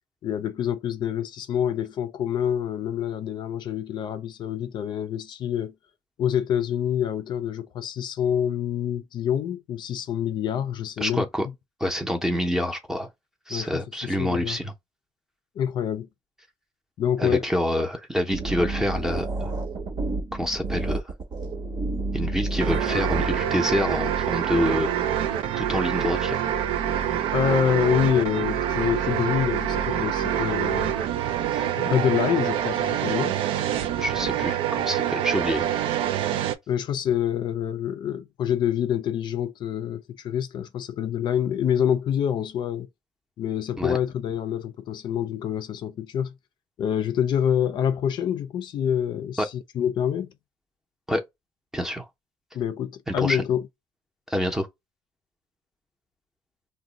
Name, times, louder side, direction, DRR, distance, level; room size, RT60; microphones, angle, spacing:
voice 1, 0.2-5.7 6.2-11.5 13.5-14.6 15.6-16.1 17.0-17.4 27.3-30.9 31.7-33.4 36.7-42.9 43.4-46.3 46.8-50.3 52.5-53.7, left 9 dB, 60° left, 0.4 m, -26 dB
voice 2, 11.0-11.5 11.8-13.1 13.5-14.7 17.2-19.5 20.3-21.0 22.1-24.9 25.6-26.4 31.5-31.7 34.0-35.7 43.8-44.0 49.4-49.5 51.1-51.2 51.7-52.1 53.1-53.4 54.3-54.7, equal, 5° right, 0.6 m, -27 dB
sound 1, 18.3-23.4, right 2 dB, 55° right, 0.9 m, -29 dB
sound 2, 22.6-36.5, right 10 dB, 90° right, 0.4 m, -26 dB
2.5 x 2.1 x 3.7 m
cardioid pair, 130°, 9 cm